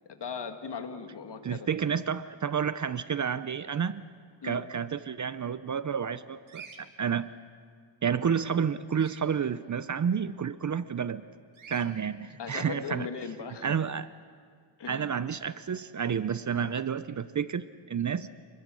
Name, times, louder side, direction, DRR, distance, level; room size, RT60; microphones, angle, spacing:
voice 1, 0.1-1.7 4.4-4.6 12.4-13.7 14.8-15.1, left 6 dB, 55° left, 6 dB, 1.8 m, -38 dB
voice 2, 1.4-4.0 4.4-7.3 8.0-11.3 11.7-13.1 13.6-14.1 14.9-18.3, right 7 dB, 40° right, 14 dB, 0.6 m, -30 dB
Bird vocalization bird call bird song, 6.5-6.8 8.9-9.2 11.5-11.9, right 6 dB, 70° right, 2.3 m, -47 dB
28.0 x 21.5 x 6.3 m, 2.1 s
wide cardioid pair, 120°, 49 cm